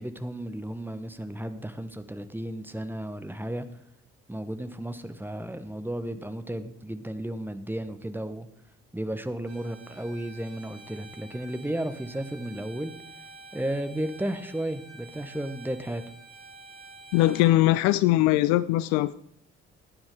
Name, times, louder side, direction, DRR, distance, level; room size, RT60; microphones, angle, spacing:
voice 1, 0.0-3.7 4.3-8.5 8.9-12.9 13.5-16.0, right 1 dB, 5° right, 10 dB, 1.3 m, -33 dB
Bowed string instrument, 9.4-17.6, right 3 dB, 80° right, 1.7 m, -48 dB
voice 2, 17.1-19.2, left 16 dB, 60° left, 17 dB, 0.5 m, -21 dB
15.0 x 9.5 x 4.9 m, 0.69 s
figure-of-eight pair, 45°, 32 cm